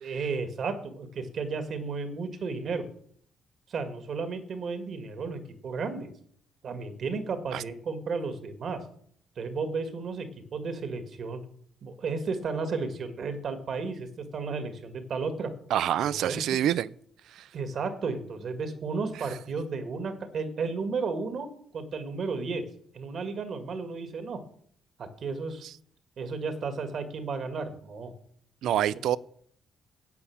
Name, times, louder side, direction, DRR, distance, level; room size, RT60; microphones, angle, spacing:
voice 1, 0.0-2.9 3.7-6.1 6.6-8.8 9.4-11.4 11.8-15.5 16.0-16.6 17.5-22.7 22.9-24.4 25.0-25.7 26.2-28.1 28.7-28.8, right 4 dB, 60° right, 1.9 m, -33 dB
voice 2, 15.7-16.9 17.3-17.5 28.6-29.2, right 11 dB, 80° right, 0.4 m, -26 dB
9.5 x 8.3 x 7.2 m
cardioid pair, 90°, 0 cm